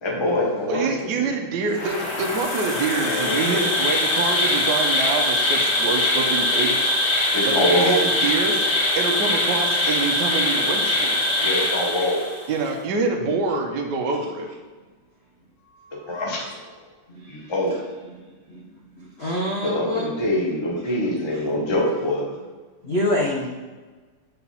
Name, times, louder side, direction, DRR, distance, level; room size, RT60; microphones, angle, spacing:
voice 1, 0.0-1.3 2.9-3.6 7.3-8.1 11.4-12.3 16.1-16.6 17.3-17.7 19.6-22.2, left 1 dB, 25° left, -2 dB, 0.6 m, -24 dB
voice 2, 0.7-6.9 7.4-8.5 8.9-11.2 12.5-14.5, right 4 dB, 65° right, 2 dB, 1.2 m, -26 dB
Insect, 1.7-12.5, left 1 dB, 90° left, 2.4 m, -22 dB
voice 3, 9.7-10.2 17.2-17.4 18.5-18.6 18.9-20.1 22.8-23.5, left 1 dB, 65° left, -3 dB, 0.6 m, -27 dB
6.8 x 4.5 x 5.5 m, 1.3 s
omnidirectional pair, 2.4 m